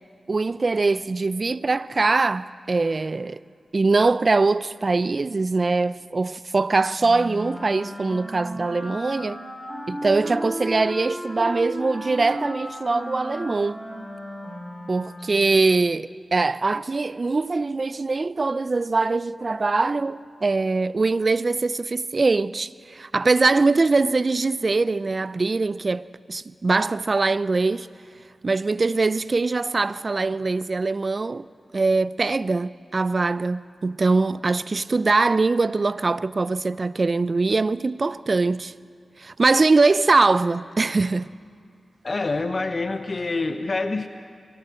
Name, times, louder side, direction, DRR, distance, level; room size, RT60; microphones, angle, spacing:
voice 1, 0.3-3.4 3.7-9.4 9.9-13.8 14.9-27.9 28.4-31.4 31.7-38.7 39.2-41.3, right 3 dB, 50° right, 0.5 m, -22 dB
Wind instrument woodwind instrument, 7.0-15.5, equal, 10° left, 7.7 m, -35 dB
voice 2, 42.0-44.1, left 3 dB, 55° left, 1.0 m, -26 dB
23.0 x 15.0 x 7.7 m
cardioid pair, 45°, 0 cm